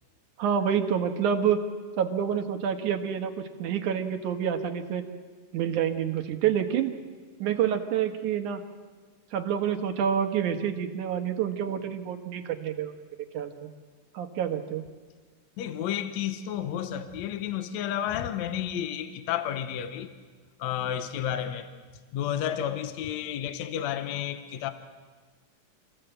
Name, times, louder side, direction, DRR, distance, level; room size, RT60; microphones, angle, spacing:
voice 1, 0.4-1.6 2.0-5.0 5.5-6.9 7.4-8.6 9.3-12.9 13.3-13.7 14.1-14.9, right 8 dB, 70° right, 6 dB, 2.6 m, -28 dB
voice 2, 15.6-20.1 20.6-21.7 22.1-24.7, left 10 dB, 65° left, 9 dB, 2.0 m, -31 dB
26.5 x 16.0 x 7.9 m, 1.5 s
omnidirectional pair, 3.9 m